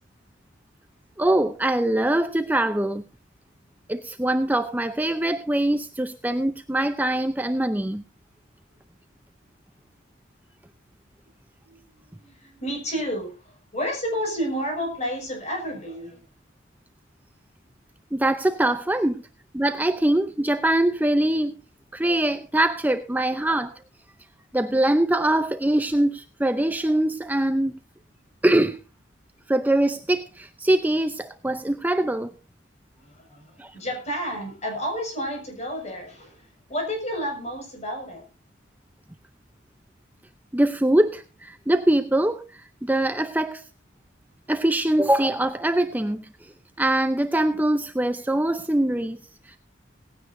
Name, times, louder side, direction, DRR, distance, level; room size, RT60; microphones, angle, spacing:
voice 1, 1.2-3.0 3.9-8.0 18.1-19.2 19.5-21.6 21.9-23.7 24.5-27.7 28.4-28.8 29.5-32.3 33.6-33.7 40.5-43.6 44.5-46.5 46.8-49.2 49.5-49.6, right 1 dB, 10° right, 0.6 m, -23 dB
voice 2, 11.6-16.2 18.9-19.0 33.0-38.2, equal, 35° left, 6.2 m, -31 dB
18.0 x 16.0 x 2.7 m
head